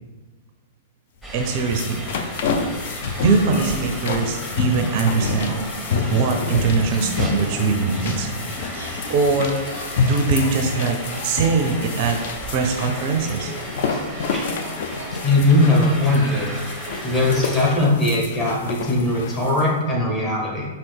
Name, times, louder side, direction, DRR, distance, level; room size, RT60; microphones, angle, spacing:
sound 1, 1.2-17.8, right 1 dB, ahead, 0.8 m, -36 dB
sound 2, 1.3-19.7, left 5 dB, 50° left, 0.4 m, -29 dB
voice 1, 1.3-2.1 3.2-5.6 6.1-8.3 9.1-9.6 10.0-11.0 11.2-12.2 12.5-13.5, right 4 dB, 40° right, 4 dB, 0.4 m, -21 dB
Laughter, 4.9-17.9 18.2-18.3, equal, 85° left, 1.3 m, -36 dB
voice 2, 15.2-16.5 17.0-20.6, left 2 dB, 25° left, -4 dB, 1.2 m, -19 dB
5.3 x 2.7 x 3.4 m, 1.2 s
figure-of-eight pair, 100°, 0 cm